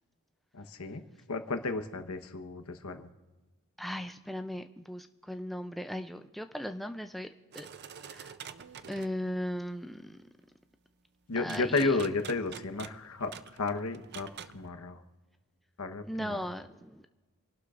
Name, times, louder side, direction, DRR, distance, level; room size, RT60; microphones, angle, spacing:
voice 1, 0.5-1.0 1.3-3.1 11.3-15.0 15.8-16.4, left 3 dB, 70° left, 8 dB, 1.1 m, -33 dB
voice 2, 3.8-7.3 7.5-7.7 8.1-8.3 8.9-10.2 11.4-12.0 16.0-17.1, equal, ahead, 7 dB, 0.4 m, -37 dB
sound 1, 7.5-9.2 11.5-14.6, right 8 dB, 50° right, 0.5 m, -46 dB
27.5 x 12.0 x 2.5 m, 1.2 s
head